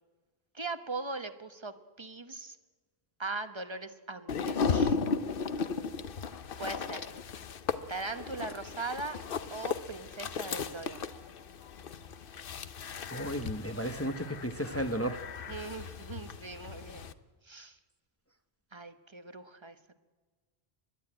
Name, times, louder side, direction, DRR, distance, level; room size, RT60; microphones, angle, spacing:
voice 1, 0.5-2.6 3.2-5.0 6.6-7.1 7.9-9.2 9.5-11.0 15.5-17.1 17.4-17.8 18.7-19.8, right 3 dB, 30° right, 9 dB, 1.0 m, -40 dB
sound 1, 4.3-17.1, left 5 dB, 60° left, 0.9 m, -36 dB
voice 2, 13.1-15.2, equal, 15° left, 7 dB, 0.9 m, -34 dB
29.5 x 12.0 x 8.8 m, 1.4 s
omnidirectional pair, 1.1 m